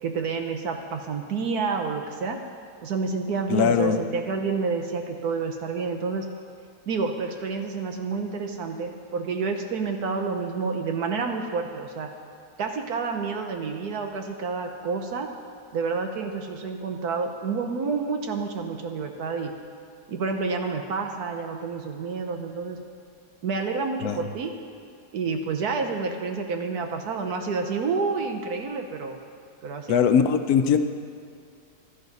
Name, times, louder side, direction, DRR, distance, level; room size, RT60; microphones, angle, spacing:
voice 1, 0.0-2.4 2.8-6.3 6.9-12.1 12.6-15.3 15.7-19.5 20.1-22.8 23.4-24.5 25.1-29.2 29.6-30.0, right 4 dB, 75° right, 4 dB, 1.4 m, -29 dB
voice 2, 3.5-4.0 24.0-24.2 29.9-30.8, left 7 dB, 70° left, 8 dB, 1.2 m, -20 dB
15.5 x 12.0 x 4.1 m, 2.4 s
omnidirectional pair, 1.7 m